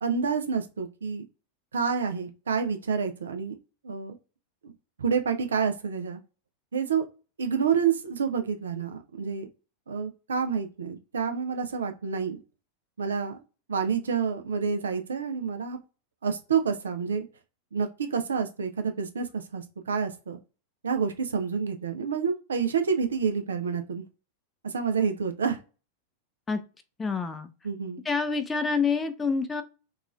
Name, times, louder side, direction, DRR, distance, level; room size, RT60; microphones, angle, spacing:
voice 1, 0.0-1.2 1.7-3.6 3.8-4.2 4.6-4.7 5.0-6.2 6.7-7.1 7.4-9.5 9.9-12.4 13.0-13.4 13.7-15.8 16.2-17.2 17.7-20.4 20.8-24.0 24.6-25.6 27.6-28.0, right 6 dB, 70° right, 7 dB, 0.4 m, -28 dB
voice 2, 27.0-27.5 28.1-29.6, left 5 dB, 15° left, 9 dB, 0.4 m, -27 dB
2.9 x 2.3 x 2.3 m, 0.32 s
figure-of-eight pair, 90°, 0 cm